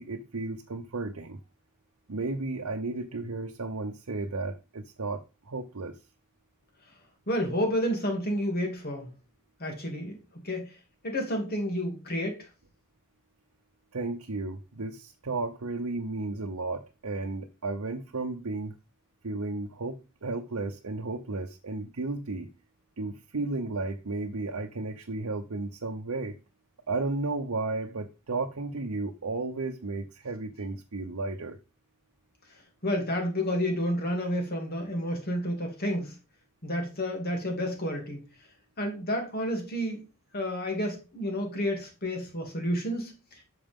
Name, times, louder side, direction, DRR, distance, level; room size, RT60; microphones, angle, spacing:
voice 1, 0.0-1.4 2.1-6.0 13.9-18.7 19.2-22.5 23.0-26.4 26.9-31.6, right 3 dB, 75° right, 0.8 m, -33 dB
voice 2, 7.3-9.1 9.6-10.2 10.4-10.8 11.0-12.5 32.8-36.2 36.6-38.2 38.8-40.0 40.3-43.1, equal, 45° left, 2.6 m, -30 dB
8.9 x 6.3 x 3.6 m
head